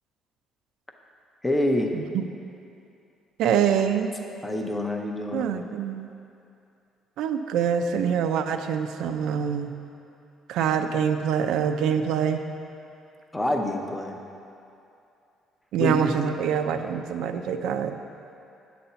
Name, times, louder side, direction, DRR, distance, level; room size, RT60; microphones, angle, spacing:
voice 1, 1.4-1.9 4.4-5.4 13.3-14.2 15.8-16.1, left 1 dB, 5° left, 2 dB, 0.5 m, -26 dB
voice 2, 1.9-2.2 3.4-4.1 5.3-6.1 7.2-9.7 10.5-12.4 15.7-18.0, right 7 dB, 65° right, 7 dB, 0.4 m, -25 dB
8.6 x 4.2 x 6.8 m, 2.7 s
cardioid pair, 180°, 0 cm